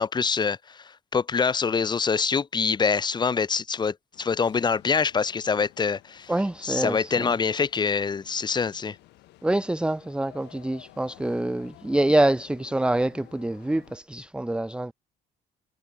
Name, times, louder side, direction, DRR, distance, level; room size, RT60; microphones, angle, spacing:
voice 1, 0.0-6.3 6.6-9.0, left 5 dB, 25° left, 0.9 m, -25 dB
sound 1, 4.1-14.0, left 19 dB, 85° left, 4.2 m, -53 dB
voice 2, 6.3-7.3 9.4-14.9, right 1 dB, 5° right, 0.8 m, -26 dB
cardioid pair, 110°, 17 cm